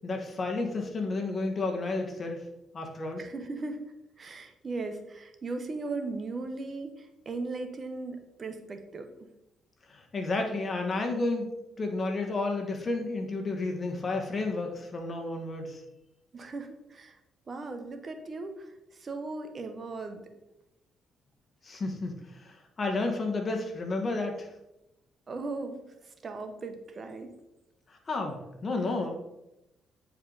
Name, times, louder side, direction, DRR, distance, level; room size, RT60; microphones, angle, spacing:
voice 1, 0.0-2.4 2.7-3.2 9.9-11.5 11.8-15.8 21.6-24.5 28.1-29.2, left 3 dB, 40° left, 3 dB, 1.5 m, -31 dB
voice 2, 3.2-3.8 4.2-9.3 16.3-17.2 17.5-20.3 25.3-27.3, right 3 dB, 40° right, 6 dB, 0.9 m, -38 dB
9.0 x 4.7 x 3.9 m, 0.90 s
cardioid pair, 90°, 0 cm